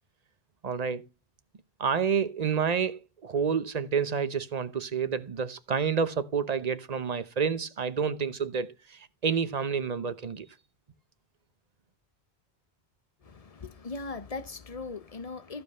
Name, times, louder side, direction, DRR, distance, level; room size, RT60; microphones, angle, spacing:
voice 1, 0.6-1.1 1.8-10.5, right 6 dB, 45° right, 0.9 m, -29 dB
voice 2, 13.2-15.6, left 3 dB, 40° left, 1.0 m, -39 dB
14.0 x 5.3 x 5.5 m
omnidirectional pair, 1.0 m